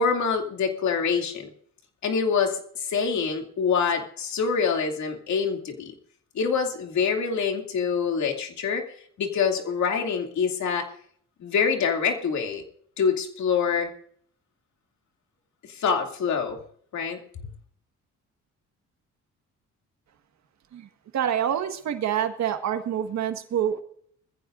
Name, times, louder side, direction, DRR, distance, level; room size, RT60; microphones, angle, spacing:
voice 1, 0.0-1.5 2.0-5.9 6.3-8.8 9.2-10.9 11.4-12.6 13.0-13.9 15.7-16.6 16.9-17.2, left 6 dB, 70° left, 3 dB, 2.7 m, -25 dB
voice 2, 20.7-23.8, right 9 dB, 65° right, 7 dB, 1.7 m, -27 dB
21.0 x 15.0 x 2.6 m, 0.62 s
cardioid pair, 90°, 30 cm